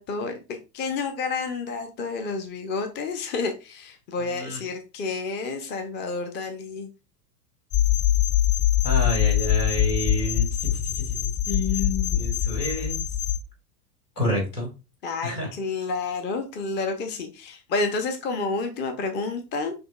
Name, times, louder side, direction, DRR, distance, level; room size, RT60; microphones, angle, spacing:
voice 1, 0.0-6.9 15.0-19.7, left 4 dB, 25° left, 6 dB, 0.6 m, -30 dB
voice 2, 4.2-4.6 8.8-13.0 14.2-14.7 15.2-15.5, left 1 dB, 85° left, 0 dB, 1.9 m, -29 dB
sound 1, 7.7-13.4, left 11 dB, 45° left, 1.6 m, -23 dB
6.0 x 2.3 x 2.2 m, 0.29 s
figure-of-eight pair, 85°, 47 cm